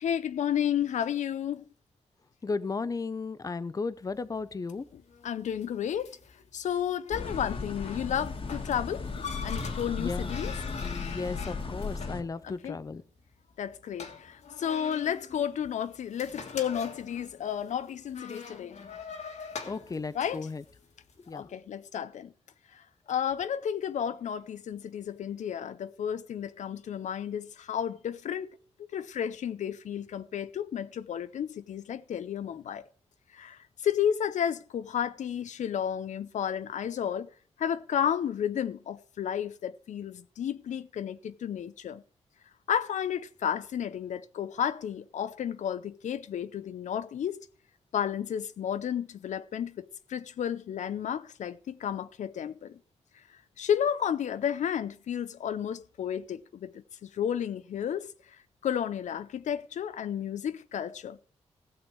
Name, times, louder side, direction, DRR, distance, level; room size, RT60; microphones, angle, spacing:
voice 1, 0.0-1.6 4.9-6.1 6.5-9.1 9.4-10.5 12.4-12.8 13.6-18.8 20.1-20.5 21.3-22.3 22.7-22.8 23.1-28.5 28.9-32.8 33.3-37.3 37.6-42.0 42.7-47.5 47.9-52.8 53.6-56.7 57.0-58.1 58.6-61.2, left 9 dB, 85° left, 0.6 m, -32 dB
voice 2, 2.4-4.9 10.0-10.3 10.8-13.0 19.7-20.6 21.3-21.5, left 4 dB, 30° left, 0.6 m, -35 dB
sound 1, 4.0-21.3, left 5 dB, 70° left, 1.7 m, -45 dB
sound 2, 7.1-12.2, left 4 dB, 50° left, 1.5 m, -35 dB
16.0 x 7.2 x 4.6 m
wide cardioid pair, 105°, 12 cm